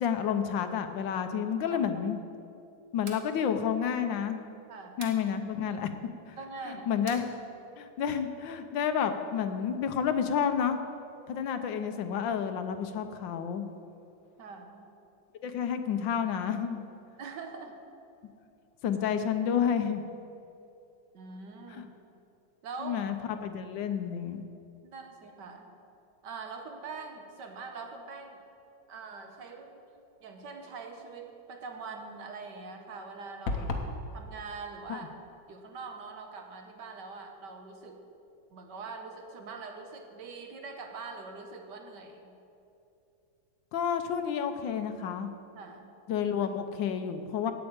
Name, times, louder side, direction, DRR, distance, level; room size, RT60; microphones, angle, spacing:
voice 1, 0.0-2.2 2.9-4.4 5.0-5.9 6.3-6.4 6.6-7.3 7.8-10.8 11.3-13.7 15.4-16.8 18.8-20.1 21.7-21.8 22.8-24.4 34.9-35.1 43.7-45.3 46.1-47.5, left 8 dB, 75° left, 8 dB, 1.4 m, -30 dB
voice 2, 1.7-2.0 4.7-5.1 6.4-6.9 11.3-11.4 14.4-14.9 17.2-17.7 21.1-21.9 22.6-23.0 24.8-25.7 26.2-28.4 28.9-29.8 30.2-33.7 34.1-35.1 35.5-38.0 38.5-42.3 45.5-45.9, right 4 dB, 65° right, 4 dB, 1.6 m, -43 dB
sound 1, 3.0-3.3 5.0-5.3 7.1-7.3, right 4 dB, 45° right, 1.4 m, -45 dB
sound 2, 33.5-34.0, left 3 dB, 50° left, 1.2 m, -31 dB
8.7 x 8.1 x 8.7 m, 2.7 s
omnidirectional pair, 2.1 m